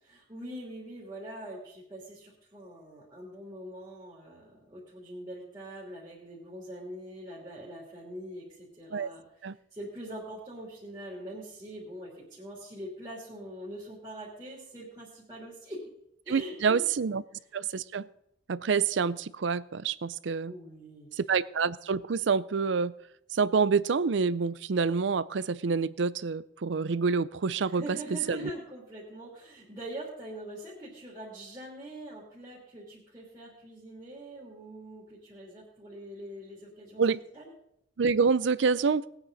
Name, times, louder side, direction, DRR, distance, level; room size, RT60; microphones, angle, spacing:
voice 1, 0.0-9.4 9.7-15.8 16.2-16.8 17.1-17.2 20.4-21.1 27.6-37.0 37.3-37.5, right 1 dB, 20° right, -7 dB, 3.0 m, -43 dB
voice 2, 16.3-17.2 17.5-18.1 18.5-20.5 21.2-22.9 23.3-28.0 28.3-28.5 37.0-37.2 38.0-39.0, right 5 dB, 75° right, 18 dB, 0.5 m, -27 dB
19.5 x 9.0 x 4.0 m, 0.76 s
head